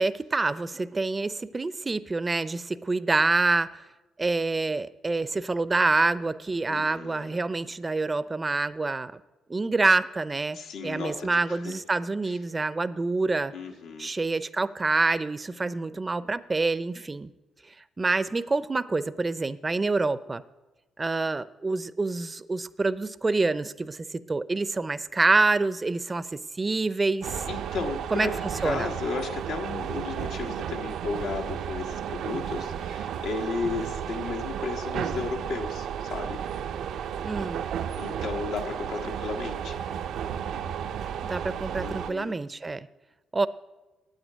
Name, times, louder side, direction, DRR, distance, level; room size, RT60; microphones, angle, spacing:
voice 1, 0.0-3.8 4.2-9.2 9.5-10.6 10.8-13.5 14.0-17.3 18.0-20.4 21.0-27.4 28.1-28.3 28.6-28.9 37.2-37.6 41.2-42.9 43.3-43.5, right 3 dB, 25° right, 15 dB, 0.5 m, -26 dB
voice 2, 6.7-7.4 10.5-11.7 12.2-12.4 13.5-14.1 27.5-36.4 38.0-39.8 41.8-42.4, left 4 dB, 80° left, 2 dB, 1.3 m, -34 dB
sound 1, 27.2-42.1, right 8 dB, 75° right, 0.5 m, -33 dB
9.0 x 8.4 x 9.4 m, 1.1 s
cardioid pair, 90°, 0 cm